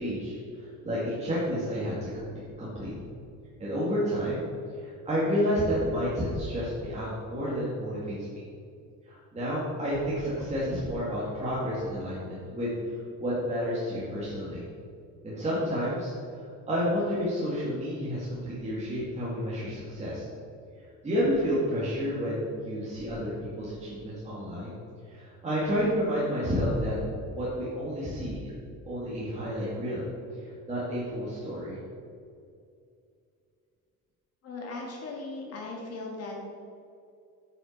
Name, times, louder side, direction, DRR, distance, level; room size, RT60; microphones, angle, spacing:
voice 1, 0.0-2.3 2.6-2.9 3.6-4.5 4.8-8.4 9.1-14.6 15.2-16.1 16.7-20.3 21.0-24.8 25.1-26.9 27.3-28.4 28.9-30.0 30.7-31.8, equal, 20° right, -8 dB, 2.1 m, -30 dB
voice 2, 34.4-36.5, left 2 dB, 50° left, -1 dB, 2.0 m, -38 dB
9.6 x 5.9 x 6.5 m, 2.5 s
cardioid pair, 160°, 32 cm